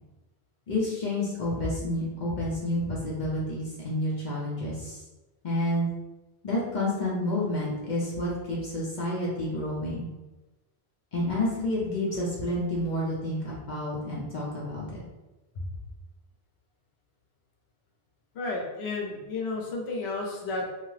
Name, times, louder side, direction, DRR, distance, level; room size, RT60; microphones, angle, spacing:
voice 1, 0.7-5.0 5.4-5.9 6.4-10.1 11.1-15.0, left 1 dB, 50° left, -6 dB, 0.7 m, -29 dB
voice 2, 18.3-20.7, left 3 dB, 85° left, 0 dB, 0.9 m, -32 dB
2.7 x 2.3 x 3.1 m, 1.1 s
omnidirectional pair, 1.1 m